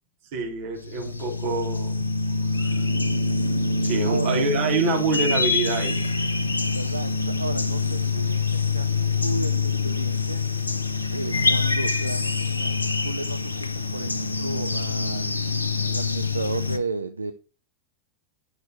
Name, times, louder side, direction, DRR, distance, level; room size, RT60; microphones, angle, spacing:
voice 1, 0.3-2.0 2.6-2.8 3.8-6.0, right 3 dB, 50° right, 0 dB, 3.7 m, -26 dB
sound 1, 0.8-16.8, left 3 dB, 80° left, 0.8 m, -25 dB
voice 2, 4.0-4.4 6.7-10.8 11.1-17.3, right 3 dB, 80° right, 8 dB, 0.6 m, -34 dB
10.5 x 6.3 x 4.4 m, 0.34 s
figure-of-eight pair, 90°, 0 cm